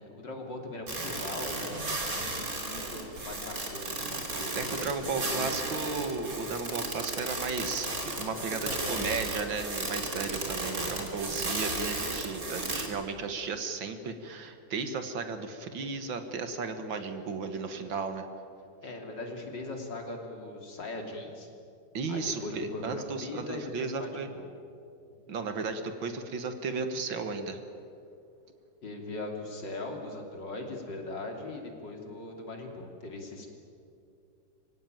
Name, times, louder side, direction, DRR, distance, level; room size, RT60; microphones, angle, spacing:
voice 1, 0.0-5.6 8.6-9.2 11.3-11.7 18.8-21.5 22.1-24.5 28.8-33.5, left 2 dB, 55° left, 2 dB, 3.6 m, -40 dB
sound 1, 0.9-12.9, right 2 dB, 40° right, 3.5 m, -34 dB
voice 2, 4.6-7.9 8.2-18.3 21.9-24.3 25.3-27.6, right 4 dB, 65° right, 8 dB, 2.2 m, -34 dB
25.5 x 16.5 x 9.3 m, 2.6 s
omnidirectional pair, 2.3 m